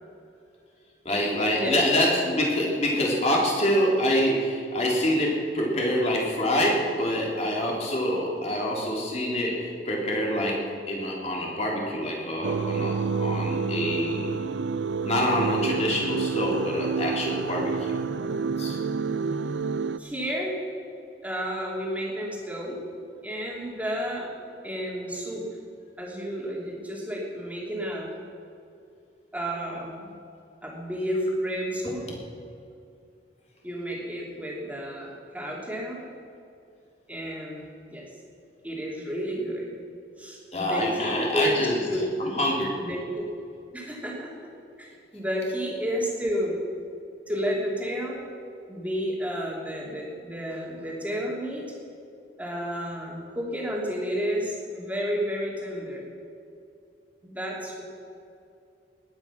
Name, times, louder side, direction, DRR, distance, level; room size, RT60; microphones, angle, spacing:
voice 1, 1.1-10.5 10.9-14.3 15.0-17.9 18.6-18.8 40.5-41.8 42.2-42.7, equal, 40° left, -3 dB, 3.5 m, -26 dB
sound 1, 12.4-20.0, right 5 dB, 85° right, 0.5 m, -28 dB
voice 2, 20.0-20.5 21.2-22.8 23.2-24.3 24.6-25.4 26.0-28.1 29.3-30.1 30.6-32.1 33.6-36.0 37.1-38.1 38.6-39.7 40.2-41.6 41.9-42.1 42.8-43.3 43.7-44.5 44.8-46.6 47.3-48.2 48.7-51.6 52.4-56.1 57.2-57.8, equal, 10° right, -3 dB, 3.1 m, -31 dB
19.5 x 9.6 x 6.0 m, 2.6 s
head